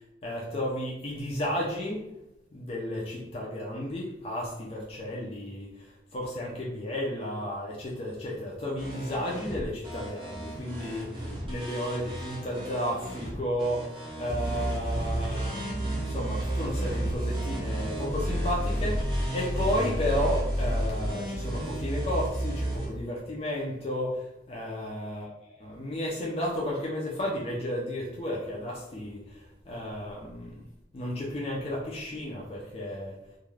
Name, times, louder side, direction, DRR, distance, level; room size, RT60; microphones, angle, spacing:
voice 1, 0.2-2.1 2.5-30.5 30.9-33.2, left 1 dB, 30° left, -4 dB, 0.4 m, -33 dB
sound 1, 8.8-22.9, right 1 dB, 30° right, 0.7 m, -32 dB
2.3 x 2.2 x 3.1 m, 0.88 s
head